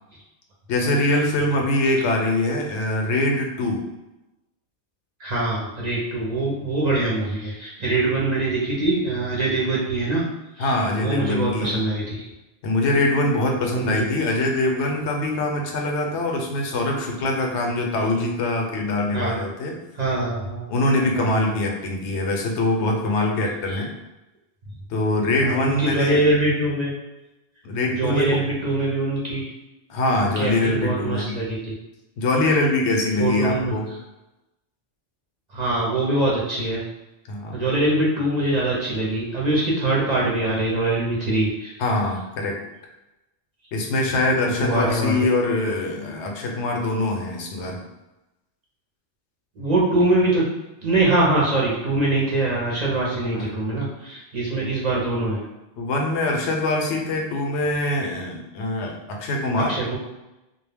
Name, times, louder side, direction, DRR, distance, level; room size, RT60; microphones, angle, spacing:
voice 1, 0.7-3.9 10.6-11.8 12.6-19.8 20.7-23.9 24.9-26.2 27.6-28.4 29.9-31.4 32.2-33.9 37.3-37.6 41.8-42.6 43.7-47.8 53.3-53.9 55.8-59.8, left 2 dB, 80° left, 1 dB, 0.9 m, -23 dB
voice 2, 5.2-10.2 10.6-10.7 11.0-12.3 13.6-14.1 19.1-19.4 20.0-20.6 21.1-21.4 23.7-23.8 25.4-26.9 27.9-29.5 30.2-31.7 33.2-33.7 35.5-36.8 37.5-41.7 44.5-45.2 49.6-50.5 50.8-55.4 59.5-60.0, right 2 dB, 45° right, -5 dB, 0.6 m, -23 dB
2.2 x 2.1 x 3.3 m, 0.97 s
omnidirectional pair, 1.2 m